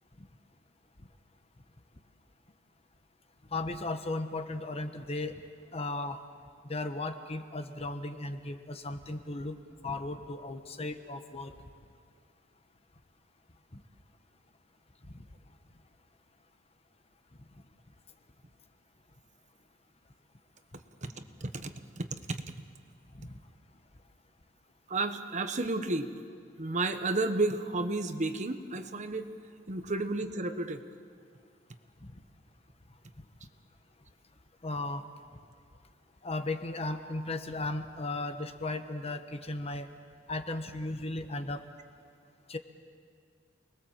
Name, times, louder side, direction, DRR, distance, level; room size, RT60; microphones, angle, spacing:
voice 1, 3.5-5.4 5.7-6.2 6.7-9.6 9.8-11.6 13.7-13.8 15.1-15.2 23.1-23.4 32.0-32.1 33.2-33.3 34.6-35.0 36.2-39.9 40.3-41.6 42.5-42.6, left 2 dB, 30° left, 8 dB, 1.2 m, -36 dB
voice 2, 21.4-22.4 24.9-26.1 26.6-29.3 29.7-30.8, right 2 dB, 40° right, 8 dB, 1.2 m, -32 dB
29.0 x 21.0 x 7.5 m, 2.2 s
head